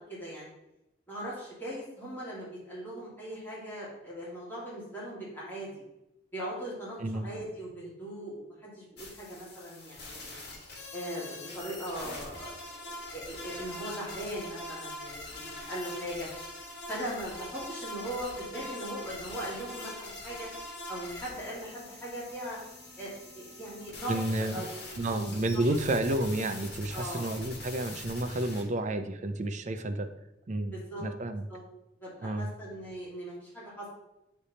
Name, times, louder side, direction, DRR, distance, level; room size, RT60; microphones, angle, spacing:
voice 1, 0.1-0.5 1.1-5.8 6.3-10.3 10.9-16.3 16.9-20.5 20.9-22.6 23.0-24.2 24.5-24.8 25.1-25.6 26.9-27.3 30.7-31.0 31.5-31.6 32.0-33.9, right 1 dB, 10° left, -8 dB, 2.5 m, -39 dB
sound 1, 9.0-28.6, left 2 dB, 60° left, 1.8 m, -43 dB
voice 2, 24.1-24.7 25.0-30.1 30.5-30.7 31.0-31.4 32.2-32.5, right 1 dB, 40° right, 8 dB, 0.5 m, -30 dB
8.5 x 3.4 x 4.1 m, 0.89 s
head